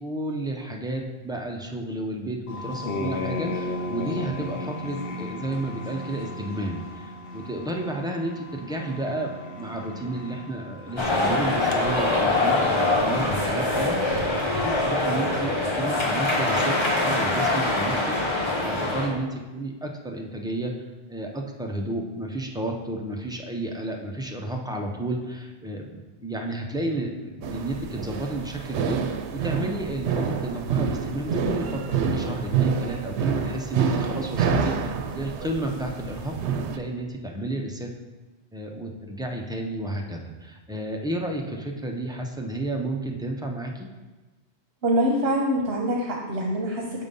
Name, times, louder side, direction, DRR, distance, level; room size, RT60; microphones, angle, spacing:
voice 1, 0.0-20.7 21.1-36.3 36.6-37.9 38.5-43.9, right 1 dB, 5° right, 1 dB, 0.4 m, -32 dB
sound 1, 2.5-11.8, left 2 dB, 65° left, 0.9 m, -35 dB
sound 2, 11.0-19.1, left 2 dB, 25° left, 1.0 m, -24 dB
sound 3, 27.4-36.8, right 6 dB, 85° right, 0.9 m, -27 dB
voice 2, 44.8-47.0, equal, 70° right, -1 dB, 1.1 m, -24 dB
6.9 x 3.8 x 5.3 m, 1.2 s
omnidirectional pair, 1.1 m